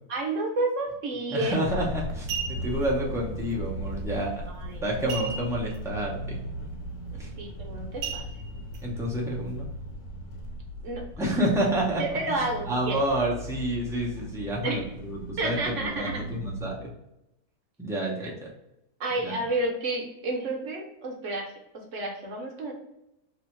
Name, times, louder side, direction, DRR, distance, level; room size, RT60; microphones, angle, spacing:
voice 1, 0.1-1.7 4.5-5.0 7.4-8.2 10.8-11.0 12.0-13.0 14.6-14.9 15.4-16.2 19.0-22.7, right 2 dB, 60° right, 0 dB, 1.1 m, -30 dB
voice 2, 1.3-4.3 4.8-6.4 7.1-7.3 8.8-9.7 11.2-16.9 17.8-18.4 19.2-19.3, right 1 dB, 5° right, -4 dB, 0.5 m, -29 dB
sound 1, 1.4-1.6 2.1-2.9 5.1-5.8 6.1-6.2 6.7-6.9 8.0-8.8 9.4-9.5, right 6 dB, 80° right, 1.1 m, -35 dB
sound 2, 1.6-16.7, right 1 dB, 85° left, 1.2 m, -37 dB
3.0 x 2.7 x 4.4 m, 0.87 s
omnidirectional pair, 1.6 m